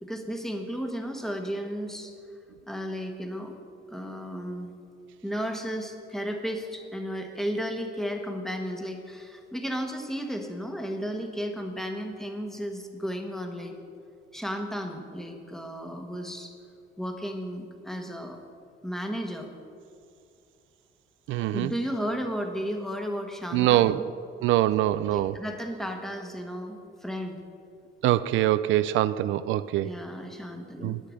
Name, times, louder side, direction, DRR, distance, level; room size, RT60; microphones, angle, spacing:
voice 1, 0.0-2.1 2.7-3.5 3.9-4.7 5.2-13.7 14.3-16.5 17.0-18.4 18.8-19.5 21.5-24.1 25.1-27.4 29.8-31.0, equal, ahead, 3 dB, 1.3 m, -34 dB
voice 2, 21.3-21.7 23.5-24.0 24.4-25.3 28.0-29.9 30.8-31.0, right 14 dB, 80° right, 15 dB, 0.4 m, -24 dB
10.5 x 9.6 x 6.4 m, 2.5 s
cardioid pair, 140°, 20 cm